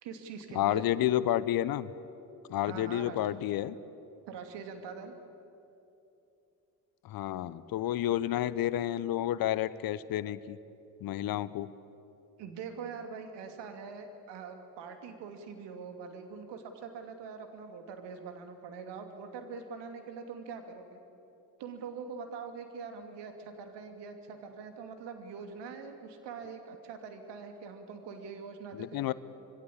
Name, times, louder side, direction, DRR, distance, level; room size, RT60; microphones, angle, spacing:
voice 1, 0.0-0.8 2.6-3.4 4.3-5.1 12.4-21.0 21.6-29.1, right 5 dB, 60° right, 6 dB, 2.9 m, -43 dB
voice 2, 0.5-1.9 2.5-3.7 7.0-10.6 11.0-11.7 28.8-29.1, left 13 dB, 50° left, 17 dB, 0.9 m, -30 dB
26.0 x 21.5 x 8.6 m, 2.8 s
figure-of-eight pair, 45°, 47 cm